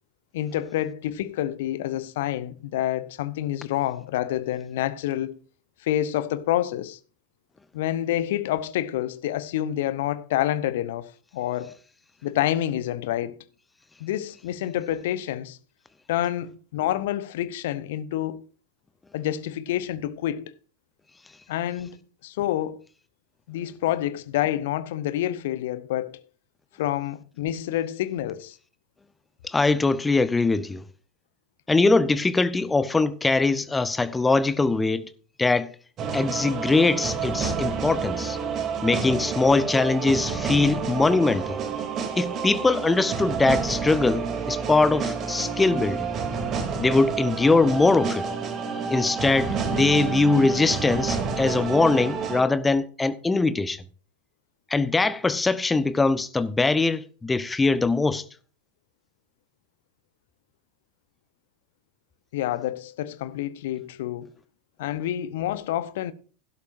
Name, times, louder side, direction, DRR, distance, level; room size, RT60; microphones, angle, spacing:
voice 1, 0.3-5.4 5.8-7.0 7.7-11.8 12.2-13.4 14.0-15.6 16.1-18.4 19.1-20.6 21.5-22.0 22.2-22.8 23.5-26.2 26.8-28.6 62.3-64.3 64.8-66.1, left 12 dB, 60° left, 0.9 m, -28 dB
voice 2, 29.4-30.8 31.7-35.1 35.4-35.7 36.1-38.4 38.8-41.6 42.2-46.1 46.8-48.3 48.9-53.8 54.7-58.2, left 3 dB, 10° left, 1.0 m, -22 dB
sound 1, 36.0-52.4, right 5 dB, 35° right, 3.0 m, -29 dB
16.5 x 12.0 x 2.6 m
figure-of-eight pair, 85°, 0 cm